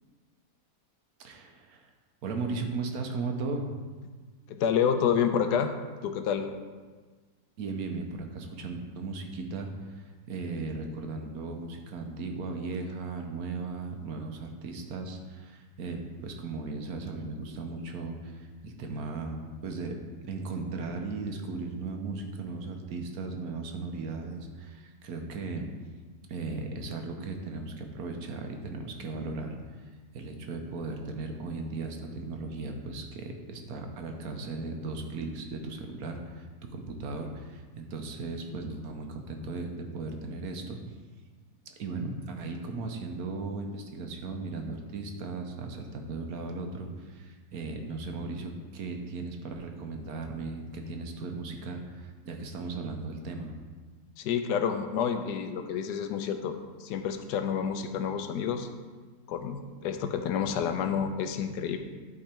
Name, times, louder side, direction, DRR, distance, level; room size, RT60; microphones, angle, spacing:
voice 1, 1.2-1.9 2.2-3.7 7.6-25.7 26.3-40.8 41.7-53.6, right 3 dB, 65° right, 3 dB, 1.2 m, -37 dB
voice 2, 4.5-5.7 6.0-6.5 54.2-58.7 59.3-61.8, left 7 dB, 90° left, 7 dB, 1.2 m, -29 dB
11.0 x 3.9 x 4.4 m, 1.4 s
omnidirectional pair, 1.7 m